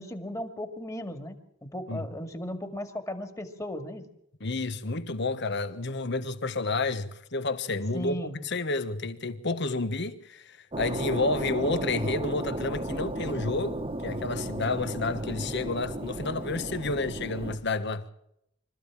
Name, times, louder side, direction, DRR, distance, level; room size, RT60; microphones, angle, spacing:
voice 1, 0.0-4.1 7.9-8.4, equal, 15° left, 2.1 m, -36 dB
voice 2, 4.4-18.1, left 3 dB, 55° left, 1.4 m, -30 dB
sound 1, 10.7-17.6, right 1 dB, 25° right, 1.4 m, -34 dB
25.0 x 14.5 x 7.5 m
head